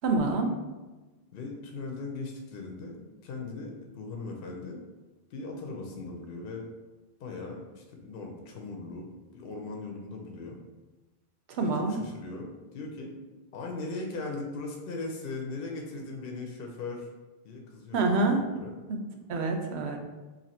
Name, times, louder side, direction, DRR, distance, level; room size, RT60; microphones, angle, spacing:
voice 1, 0.0-0.5 11.6-12.0 17.9-18.4 18.9-19.0 19.3-20.0, right 3 dB, 85° right, 3 dB, 0.9 m, -26 dB
voice 2, 1.3-4.8 5.3-6.7 7.2-9.1 9.3-10.6 11.6-13.2 13.5-17.1 17.4-18.7, left 3 dB, 65° left, 1 dB, 0.8 m, -39 dB
2.7 x 2.5 x 4.1 m, 1.2 s
omnidirectional pair, 1.1 m